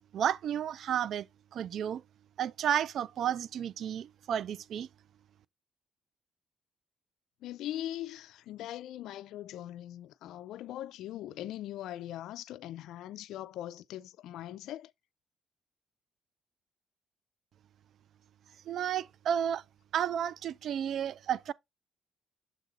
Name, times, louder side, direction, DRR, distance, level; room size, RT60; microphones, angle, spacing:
voice 1, 0.1-1.3 1.5-2.0 2.4-4.9 18.7-19.6 19.9-21.5, right 9 dB, 70° right, 0.3 m, -32 dB
voice 2, 7.4-14.9, left 13 dB, 85° left, 0.4 m, -41 dB
7.3 x 4.0 x 3.8 m
cardioid pair, 90°, 0 cm